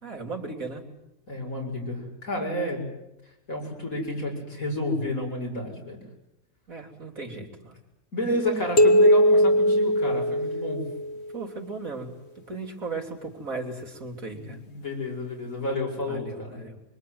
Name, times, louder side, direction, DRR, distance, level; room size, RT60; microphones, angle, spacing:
voice 1, 0.0-0.8 6.7-7.8 11.3-14.6 16.0-16.8, right 3 dB, 75° right, 2 dB, 4.0 m, -37 dB
voice 2, 1.3-2.8 3.5-6.0 8.1-10.8 14.3-16.6, left 1 dB, 80° left, 0 dB, 7.5 m, -30 dB
sound 1, 8.8-11.2, equal, 50° left, 1.9 m, -19 dB
25.0 x 24.5 x 9.5 m, 0.87 s
omnidirectional pair, 1.4 m